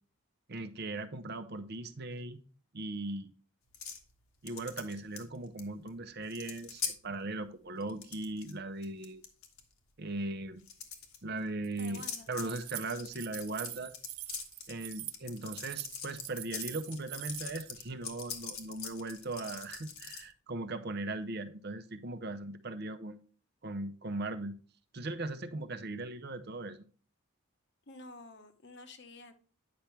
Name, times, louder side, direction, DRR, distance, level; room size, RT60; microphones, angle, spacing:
voice 1, 0.5-2.4 2.7-3.3 4.4-9.2 10.0-10.6 11.2-13.9 14.7-23.2 23.6-24.6 24.9-26.8, right 2 dB, 50° right, 0.7 m, -39 dB
sound 1, 3.7-4.0 4.5-5.6 5.9-6.0 6.2-6.9 7.8-8.5 8.8-9.6 10.6-11.2 11.9-20.2, left 7 dB, 80° left, 1.5 m, -42 dB
Keys jangling, 11.6-17.7, right 17 dB, 80° right, 0.5 m, -44 dB
voice 2, 11.8-12.3 27.9-29.3, left 2 dB, 55° left, 1.0 m, -50 dB
9.5 x 5.9 x 3.3 m
head